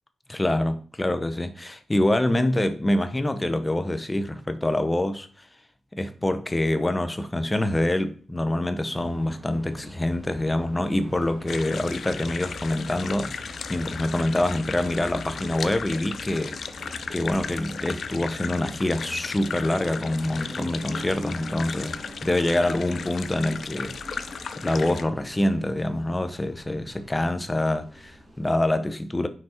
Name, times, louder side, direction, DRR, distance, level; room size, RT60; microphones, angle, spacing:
voice 1, 0.3-5.3 5.9-16.6 17.1-24.0 24.6-29.3, left 1 dB, 15° left, 0.7 m, -25 dB
sound 1, 8.9-28.5, equal, 15° right, 2.3 m, -43 dB
sound 2, 11.5-25.0, left 6 dB, 55° left, 0.5 m, -36 dB
6.0 x 5.3 x 4.3 m
wide cardioid pair, 145°, 0 cm